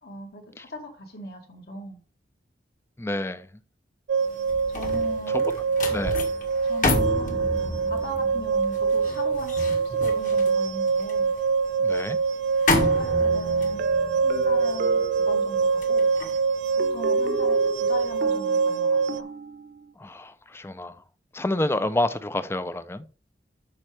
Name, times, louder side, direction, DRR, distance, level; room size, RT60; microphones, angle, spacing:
voice 1, 0.0-2.0 4.7-5.4 6.6-7.4 7.9-11.3 12.7-13.8 14.2-16.1 16.9-19.3, left 1 dB, 65° left, 2.1 m, -39 dB
voice 2, 3.0-3.4 5.3-5.4 5.9-6.2 11.8-12.2 20.0-21.0 21.3-23.0, left 1 dB, 15° left, 0.5 m, -28 dB
sound 1, 4.1-19.2, right 5 dB, 85° right, 0.4 m, -24 dB
sound 2, 4.3-17.6 18.0-18.3, left 2 dB, 50° left, 1.7 m, -31 dB
sound 3, 13.8-16.0 16.8-19.9, right 2 dB, 55° right, 0.9 m, -34 dB
8.7 x 6.1 x 3.3 m
head